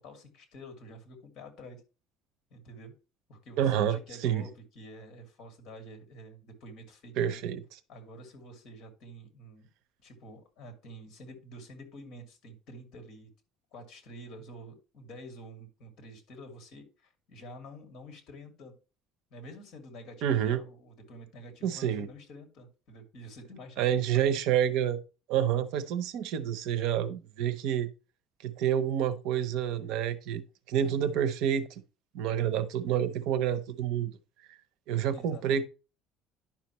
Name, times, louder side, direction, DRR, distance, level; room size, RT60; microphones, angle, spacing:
voice 1, 0.0-1.8 2.5-2.9 3.3-7.4 7.9-9.7 10.0-13.3 13.7-18.8 19.3-23.8 24.1-24.3 35.1-35.4, equal, 40° left, 2.4 m, -48 dB
voice 2, 3.6-4.4 7.2-7.6 20.2-20.6 21.6-22.1 23.8-25.0 25.3-27.9 28.4-30.4 30.7-31.7 32.1-34.1 34.9-35.6, right 9 dB, 60° right, 0.7 m, -28 dB
10.5 x 5.8 x 3.1 m
cardioid pair, 175°, 0 cm